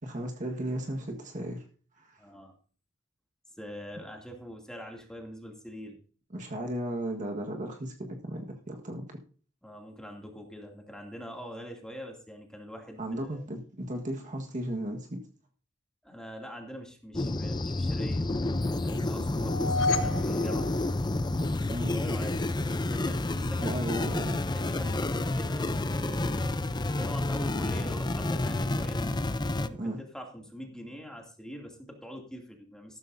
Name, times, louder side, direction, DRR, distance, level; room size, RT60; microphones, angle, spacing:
voice 1, 0.0-1.6 2.0-2.2 6.3-9.2 13.0-15.3 21.7-22.0 23.6-24.4 29.8-30.0, right 1 dB, 40° right, 2 dB, 1.6 m, -35 dB
voice 2, 2.2-2.5 3.6-6.0 9.6-13.4 16.0-20.7 21.9-22.4 22.9-24.1 24.5-26.5 26.9-29.0 29.6-33.0, equal, 5° left, 1 dB, 2.5 m, -43 dB
sound 1, 17.1-29.7, left 2 dB, 20° left, 0.6 m, -29 dB
sound 2, 19.4-21.6, left 2 dB, 80° left, 1.3 m, -32 dB
14.0 x 13.0 x 2.7 m, 0.39 s
head